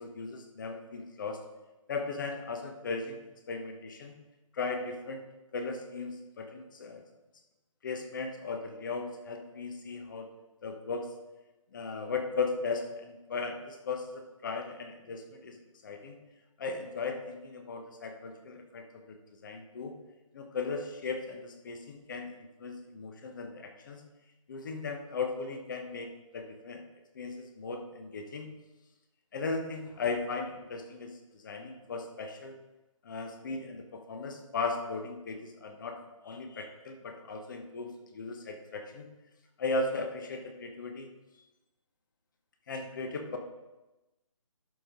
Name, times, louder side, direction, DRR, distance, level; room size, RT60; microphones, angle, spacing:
voice 1, 0.0-1.4 1.9-3.2 3.5-4.1 4.5-5.2 5.5-7.0 7.8-10.3 10.6-11.1 11.7-15.6 15.8-16.2 16.6-19.2 19.4-19.9 20.3-22.3 22.6-24.0 24.5-26.1 26.3-26.8 27.1-28.5 29.3-32.5 33.0-36.0 36.2-39.1 39.6-41.1 42.7-43.4, left 4 dB, 35° left, 5 dB, 1.1 m, -37 dB
12.0 x 5.3 x 3.8 m, 1.1 s
figure-of-eight pair, 155°, 17 cm